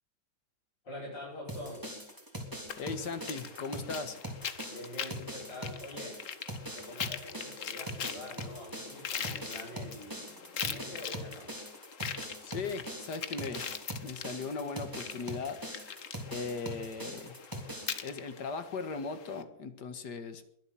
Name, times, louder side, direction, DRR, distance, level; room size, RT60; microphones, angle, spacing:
voice 1, 0.8-1.9 4.7-6.2 6.7-11.6, left 1 dB, 85° left, -7 dB, 7.0 m, -45 dB
sound 1, 1.5-18.0, equal, 10° right, 3.0 m, -42 dB
sound 2, 2.7-19.4, left 8 dB, 50° left, 1.3 m, -42 dB
voice 2, 2.8-4.2 12.4-13.7 14.0-15.6 16.3-17.4 18.0-20.5, left 4 dB, 65° left, 10 dB, 2.2 m, -38 dB
22.0 x 7.7 x 7.6 m, 0.75 s
omnidirectional pair, 1.9 m